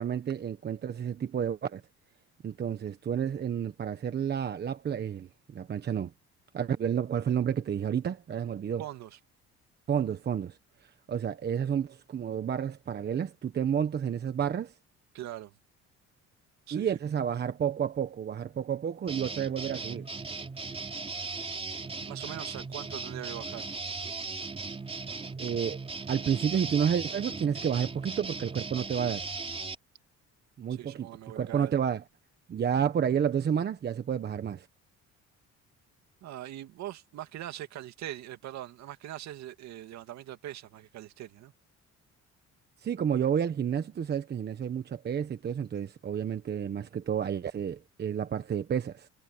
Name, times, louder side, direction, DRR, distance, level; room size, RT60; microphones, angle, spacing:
voice 1, 0.0-1.8 2.4-6.1 6.5-8.8 9.9-14.7 16.7-20.1 25.4-25.8 26.1-29.3 30.6-31.1 31.3-32.0 32.5-34.7 42.8-49.1, right 8 dB, 35° right, 1.1 m, -30 dB
voice 2, 8.8-9.2 15.1-15.6 16.7-17.0 22.0-23.7 30.7-31.7 36.2-41.5, right 13 dB, 65° right, 2.4 m, -41 dB
sound 1, 19.1-29.8, right 4 dB, 20° right, 4.3 m, -38 dB
cardioid pair, 145°, 29 cm